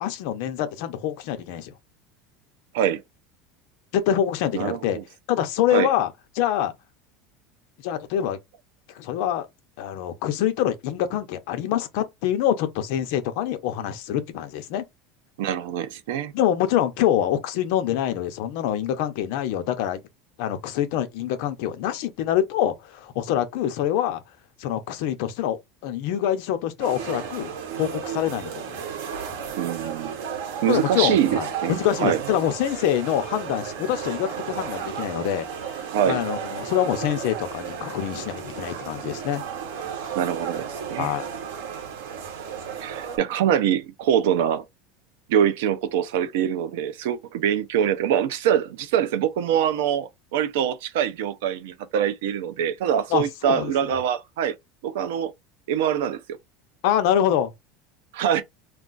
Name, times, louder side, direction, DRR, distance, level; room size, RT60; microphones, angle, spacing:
voice 1, 0.0-1.7 3.9-5.0 5.3-6.1 6.3-6.7 7.8-8.4 9.0-9.5 9.8-14.8 16.3-20.0 20.4-24.2 24.6-28.8 30.7-39.4 41.0-41.3 53.1-53.7 56.8-57.5, left 10 dB, 55° left, 0.6 m, -25 dB
voice 2, 4.5-5.0 5.7-5.9 15.4-16.3 29.6-30.1 30.6-32.2 35.9-36.2 40.1-41.1 42.8-44.7 45.3-54.6 54.8-55.3 55.7-56.2 58.1-58.4, right 9 dB, 75° right, 0.5 m, -24 dB
sound 1, 26.8-43.2, right 7 dB, 90° right, 0.9 m, -34 dB
2.4 x 2.3 x 3.8 m
cardioid pair, 180°, 0 cm